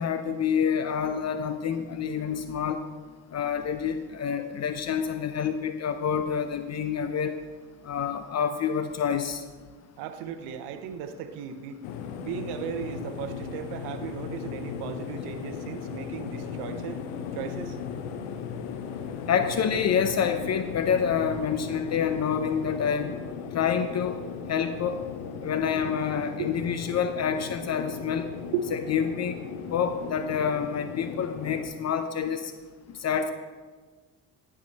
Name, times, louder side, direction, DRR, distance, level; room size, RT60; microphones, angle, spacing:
voice 1, 0.0-2.8 3.3-7.4 7.8-9.4 19.3-23.2 23.5-24.2 24.5-25.0 25.4-28.3 28.7-29.4 29.7-32.5 32.9-33.3, left 7 dB, 40° left, 8 dB, 0.6 m, -27 dB
voice 2, 10.0-11.7 12.2-17.0 17.4-17.8 26.4-26.5 28.5-28.7, right 7 dB, 80° right, 9 dB, 0.7 m, -35 dB
sound 1, 11.8-31.7, left 7 dB, 85° left, 0.7 m, -37 dB
11.0 x 4.9 x 4.1 m, 1.4 s
supercardioid pair, 70°, 39 cm